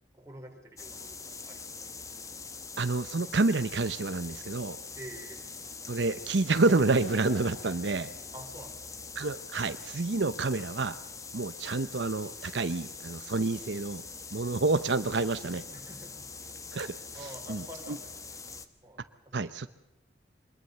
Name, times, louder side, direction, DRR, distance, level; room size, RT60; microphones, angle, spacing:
voice 1, 0.1-1.6 5.0-5.4 8.3-8.9 15.7-16.2 17.1-18.4 18.8-19.5, equal, 15° right, 1 dB, 4.8 m, -47 dB
sound 1, 0.8-18.7, left 4 dB, 20° left, 1.3 m, -43 dB
voice 2, 2.8-4.8 5.9-8.1 9.2-11.0 11.3-14.0 14.3-15.6 16.7-17.0 17.2-17.6 17.9-18.0 19.3-19.7, right 3 dB, 75° right, 12 dB, 0.8 m, -28 dB
sound 2, 6.8-8.9, equal, 35° left, 2.8 m, -48 dB
24.5 x 21.0 x 6.8 m, 0.87 s
head